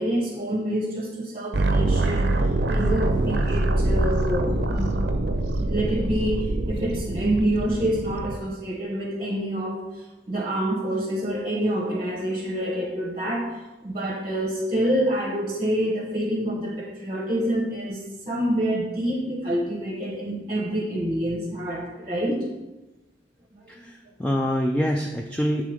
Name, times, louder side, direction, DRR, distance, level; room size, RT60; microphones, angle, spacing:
voice 1, 0.0-2.4 2.7-5.2 5.6-22.4, right 1 dB, 30° right, 0 dB, 0.8 m, -27 dB
sound 1, 1.5-8.4, right 2 dB, 60° right, 0.5 m, -24 dB
voice 2, 4.4-5.0 23.7-25.7, equal, 5° left, 1 dB, 0.3 m, -26 dB
7.5 x 3.7 x 4.9 m, 1.1 s
head